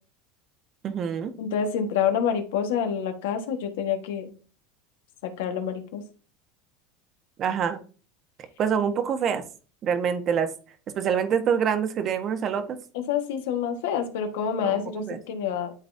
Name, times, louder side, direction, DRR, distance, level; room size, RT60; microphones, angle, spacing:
voice 1, 0.8-1.3 7.4-7.8 8.6-9.4 9.8-10.5 11.0-12.8 14.6-15.2, right 7 dB, 40° right, 8 dB, 1.3 m, -26 dB
voice 2, 1.4-4.3 5.2-6.0 12.9-15.7, left 8 dB, 80° left, 5 dB, 1.6 m, -27 dB
11.5 x 4.0 x 2.8 m, 0.38 s
supercardioid pair, 115°, 0 cm